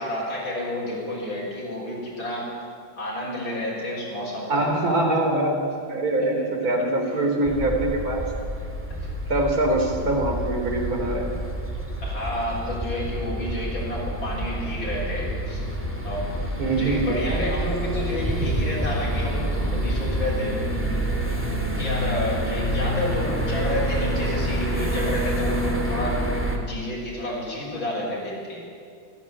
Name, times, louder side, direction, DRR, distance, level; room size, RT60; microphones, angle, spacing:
voice 1, 0.0-2.5 2.9-4.7 6.0-6.7 12.0-15.6 16.0-16.3 16.7-20.6 21.6-26.2 26.5-28.7, left 1 dB, 70° left, -4 dB, 7.6 m, -30 dB
voice 2, 4.5-8.2 9.3-11.3 16.6-17.3, right 2 dB, 45° right, 1 dB, 4.0 m, -23 dB
sound 1, 7.4-26.6, right 1 dB, 5° right, 2.3 m, -27 dB
29.5 x 13.0 x 8.6 m, 2.3 s
omnidirectional pair, 2.2 m